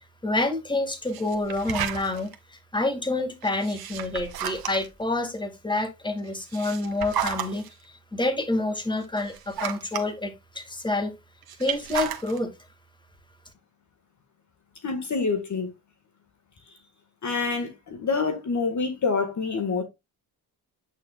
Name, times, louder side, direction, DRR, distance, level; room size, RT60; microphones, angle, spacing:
voice 1, 0.2-11.1 11.6-12.5, left 2 dB, 10° left, 2.2 m, -28 dB
sound 1, 1.1-2.3 3.4-5.0 6.3-7.7 8.4-8.5 9.0-10.1 11.4-12.4, right 9 dB, 60° right, 1.5 m, -32 dB
voice 2, 14.8-15.7 17.2-19.8, left 4 dB, 45° left, 1.8 m, -27 dB
9.0 x 6.3 x 2.4 m
cardioid pair, 85°, 41 cm